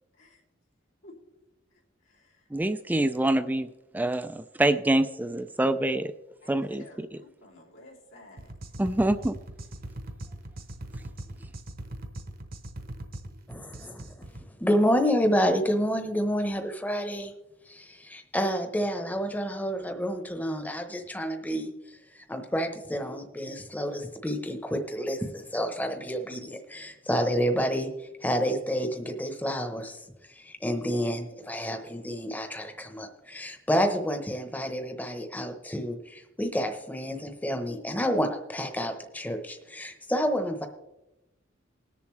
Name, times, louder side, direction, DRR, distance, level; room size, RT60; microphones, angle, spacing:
voice 1, 2.5-3.7 3.9-6.1 6.5-7.2 8.8-9.4, right 1 dB, 10° right, 10 dB, 0.3 m, -26 dB
voice 2, 6.8-8.5, left 1 dB, 85° left, -3 dB, 2.8 m, -51 dB
sound 1, 8.4-14.5, right 1 dB, 50° right, 1.0 m, -41 dB
voice 3, 13.5-14.0 14.6-17.3 17.7-21.7 22.1-27.9 28.2-30.0 30.4-40.7, equal, 10° left, 6 dB, 0.9 m, -29 dB
20.5 x 7.0 x 3.2 m, 0.99 s
head